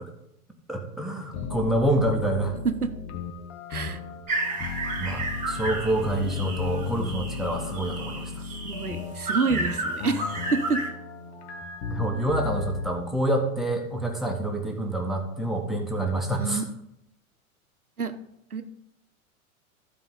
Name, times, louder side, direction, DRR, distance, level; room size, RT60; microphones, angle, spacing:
voice 1, 0.7-2.5 5.0-8.4 11.9-16.6, right 1 dB, ahead, 1 dB, 1.7 m, -27 dB
sound 1, 1.3-12.9, left 5 dB, 45° left, 1.5 m, -35 dB
sound 2, 4.3-10.9, right 2 dB, 15° right, 2.5 m, -32 dB
voice 2, 8.6-10.8 16.4-16.6 18.0-18.1 18.5-18.6, right 4 dB, 90° right, 9 dB, 0.9 m, -27 dB
14.5 x 4.9 x 4.0 m, 0.79 s
figure-of-eight pair, 95°, 43 cm